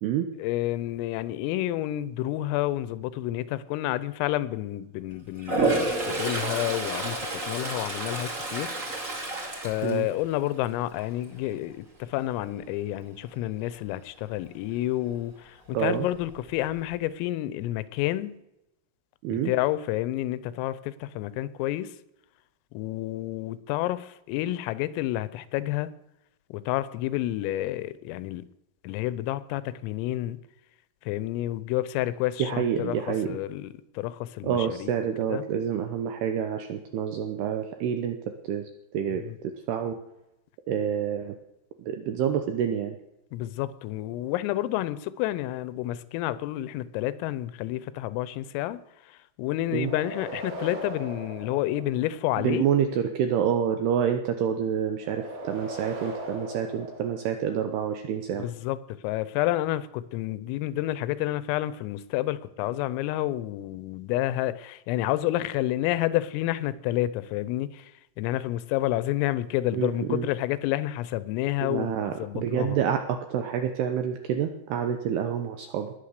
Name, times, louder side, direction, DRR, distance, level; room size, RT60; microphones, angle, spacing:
voice 1, 0.4-8.7 9.1-18.3 19.3-21.9 22.7-25.9 26.5-28.4 28.8-30.4 31.0-34.9 35.3-35.4 39.2-39.4 43.3-52.7 58.4-58.8 59.0-67.9 68.2-72.8, left 15 dB, 90° left, 16 dB, 3.4 m, -29 dB
Toilet flush, 5.4-10.6 11.0-11.4 15.8-15.9 16.2-16.9, right 2 dB, 25° right, 1.7 m, -30 dB
voice 2, 15.7-16.1 19.2-19.5 32.4-33.4 34.4-38.2 38.4-40.0 40.7-41.4 41.8-43.0 49.7-49.9 52.4-58.5 69.7-70.3 71.6-75.9, right 8 dB, 80° right, 7 dB, 2.3 m, -28 dB
sound 1, 49.7-52.4 55.0-57.7, right 1 dB, 65° right, 5.1 m, -39 dB
20.5 x 9.2 x 6.7 m, 0.90 s
omnidirectional pair, 5.8 m